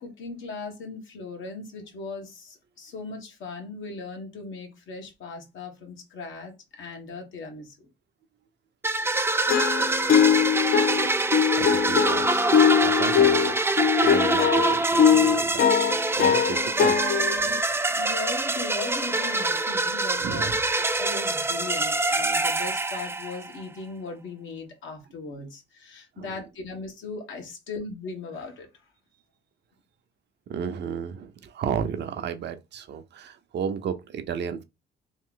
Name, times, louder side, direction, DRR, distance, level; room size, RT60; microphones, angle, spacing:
voice 1, 0.0-7.7 18.0-28.7, left 3 dB, 75° left, 1.2 m, -38 dB
sound 1, 8.8-23.6, right 2 dB, 10° right, 0.4 m, -25 dB
sound 2, 9.5-17.6, left 8 dB, 50° left, 0.4 m, -21 dB
voice 2, 10.0-10.5 11.6-15.7 16.1-17.0 20.2-20.5 26.2-26.4 30.5-34.6, right 7 dB, 60° right, 0.6 m, -33 dB
3.1 x 2.4 x 3.7 m
cardioid pair, 90°, 20 cm